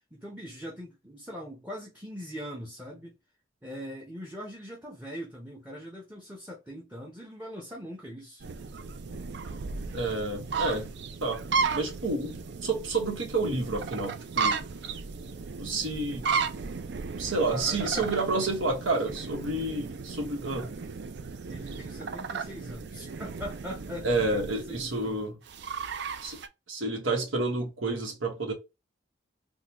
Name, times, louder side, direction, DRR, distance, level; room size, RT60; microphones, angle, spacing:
voice 1, 0.1-3.1 3.6-8.4 17.5-18.7 21.5-25.2, equal, 10° right, 0.7 m, -41 dB
sound 1, 8.4-26.5, right 5 dB, 55° right, 0.4 m, -35 dB
voice 2, 9.9-10.9 11.2-11.4 11.7-12.3 12.6-14.6 15.6-16.3 17.1-20.7 24.0-25.4 26.2-26.4 26.7-28.5, right 2 dB, 85° right, 1.1 m, -29 dB
3.7 x 2.2 x 2.9 m
head